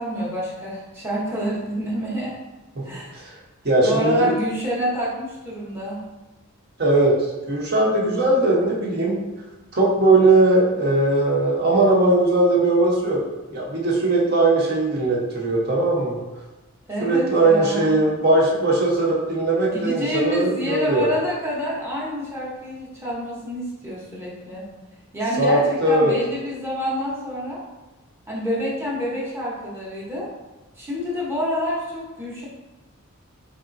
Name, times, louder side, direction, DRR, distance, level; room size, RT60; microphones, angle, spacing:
voice 1, 0.0-2.3 2.8-3.2 3.8-6.0 16.9-17.9 19.6-24.6 25.1-27.6 28.3-30.3 30.7-32.5, equal, 10° right, -7 dB, 0.8 m, -27 dB
voice 2, 3.6-4.3 6.8-7.1 7.5-9.2 9.7-13.2 13.5-16.2 17.0-21.1 25.4-26.1, right 2 dB, 50° right, -4 dB, 0.8 m, -19 dB
3.8 x 3.5 x 2.5 m, 1.1 s
head